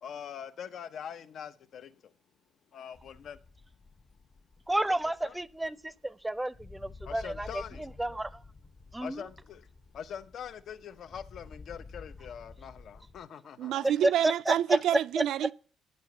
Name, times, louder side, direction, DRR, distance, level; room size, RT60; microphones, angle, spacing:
voice 1, 0.0-2.1 2.7-3.4 5.2-5.4 7.1-7.9 9.0-9.6 9.9-13.9 14.7-14.8, left 8 dB, 65° left, 0.7 m, -43 dB
sound 1, 2.9-13.3, left 3 dB, 40° left, 1.2 m, -51 dB
voice 2, 4.7-8.4 8.9-9.3 14.2-14.8 15.2-15.3, right 1 dB, 10° right, 0.6 m, -31 dB
voice 3, 13.6-15.5, right 11 dB, 80° right, 0.4 m, -28 dB
9.5 x 6.8 x 7.9 m
cardioid pair, 90°, 0 cm